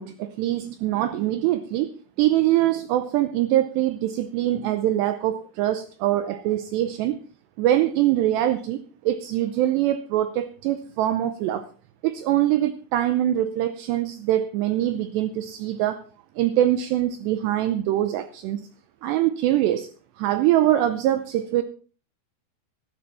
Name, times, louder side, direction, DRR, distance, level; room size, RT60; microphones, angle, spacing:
voice 1, 0.0-1.9 2.2-7.2 7.6-8.8 9.1-11.6 12.0-16.0 16.4-18.7 19.0-19.9 20.2-21.6, right 13 dB, 85° right, 10 dB, 2.4 m, -23 dB
13.0 x 12.0 x 4.1 m, 0.39 s
omnidirectional pair, 5.8 m